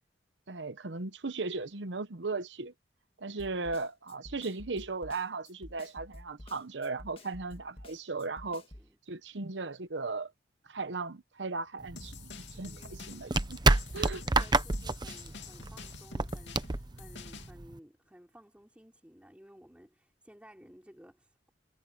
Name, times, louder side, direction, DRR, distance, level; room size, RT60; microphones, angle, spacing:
voice 1, 0.5-2.7 3.2-8.7 9.1-10.3 10.6-13.6 13.9-14.2, right 3 dB, 85° right, 1.0 m, -37 dB
Snare drum, 3.4-8.9, left 1 dB, 35° left, 1.7 m, -50 dB
sound 1, 11.8-17.8, right 3 dB, 25° right, 0.7 m, -30 dB
sound 2, 12.0-17.5, left 5 dB, 80° left, 2.6 m, -48 dB
voice 2, 12.5-21.5, equal, 10° right, 3.2 m, -56 dB
head